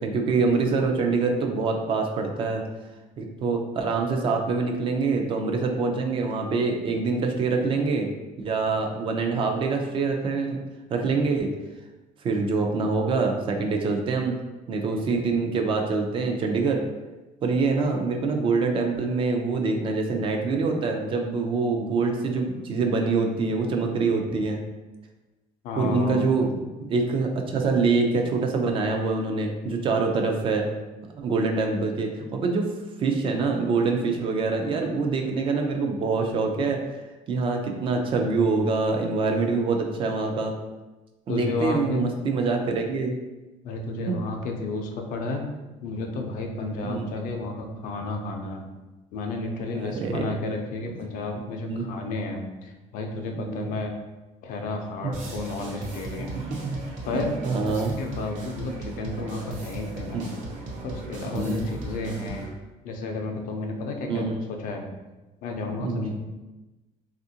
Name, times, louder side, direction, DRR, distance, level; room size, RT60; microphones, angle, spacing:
voice 1, 0.0-2.6 3.2-8.1 8.4-10.6 10.9-11.5 12.2-14.4 14.7-16.8 17.4-24.6 25.8-26.6 26.9-30.7 31.1-32.7 33.0-36.8 37.3-40.5 41.3-43.1 44.1-44.2 46.8-47.0 49.7-50.4 51.6-51.9 53.4-53.7 55.0-55.1 56.3-56.8 57.1-57.9 60.1-60.2 61.3-61.7 64.1-64.4 65.8-66.2, right 4 dB, 35° right, 3 dB, 0.4 m, -25 dB
voice 2, 25.6-26.3 41.3-42.1 43.6-45.5 45.8-48.7 49.1-53.9 54.4-56.4 57.1-57.3 57.6-60.3 60.8-62.5 62.8-64.8 65.4-66.2, left 3 dB, 70° left, 2 dB, 0.5 m, -32 dB
sound 1, 55.1-62.5, right 2 dB, 60° right, 0.7 m, -37 dB
3.4 x 2.4 x 2.7 m, 1.1 s
cardioid pair, 155°, 14 cm